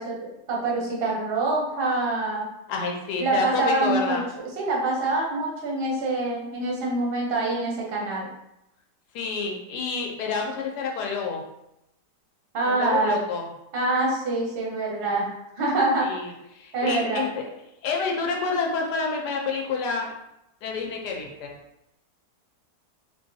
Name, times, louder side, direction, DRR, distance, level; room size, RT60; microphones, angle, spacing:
voice 1, 0.0-2.5 3.2-8.3 12.5-13.2 13.7-15.3 15.6-16.1 16.7-17.3, right 2 dB, 50° right, -2 dB, 0.7 m, -25 dB
voice 2, 2.7-4.3 9.1-11.4 12.7-13.5 16.0-17.5 17.8-20.1 20.6-21.5, left 4 dB, 70° left, 1 dB, 1.2 m, -28 dB
4.0 x 2.3 x 2.6 m, 0.85 s
omnidirectional pair, 1.9 m